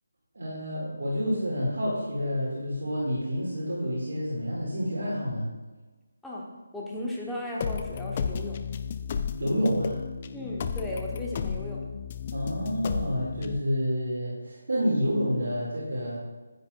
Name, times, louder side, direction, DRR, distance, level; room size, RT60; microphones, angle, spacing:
voice 1, 0.3-5.5 9.4-10.0 12.3-16.2, equal, 55° right, -6 dB, 2.2 m, -29 dB
voice 2, 6.7-8.6 10.3-11.9, left 1 dB, 5° left, -5 dB, 1.0 m, -35 dB
sound 1, 7.6-13.6, left 6 dB, 30° left, 0.3 m, -33 dB
9.5 x 8.5 x 2.4 m, 1.2 s
figure-of-eight pair, 155°, 0 cm